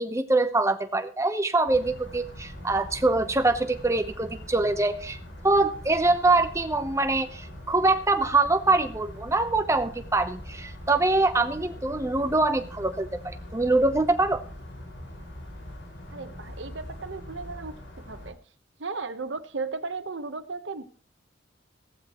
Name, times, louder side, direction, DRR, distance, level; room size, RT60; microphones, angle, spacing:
voice 1, 0.0-5.2 5.4-14.4, right 2 dB, 15° right, 8 dB, 0.9 m, -24 dB
sound 1, 1.7-18.3, left 1 dB, 75° left, 5.5 m, -42 dB
voice 2, 16.1-17.8 18.1-18.4 18.8-20.8, right 4 dB, 75° right, 10 dB, 1.1 m, -35 dB
15.5 x 14.5 x 3.1 m, 0.42 s
head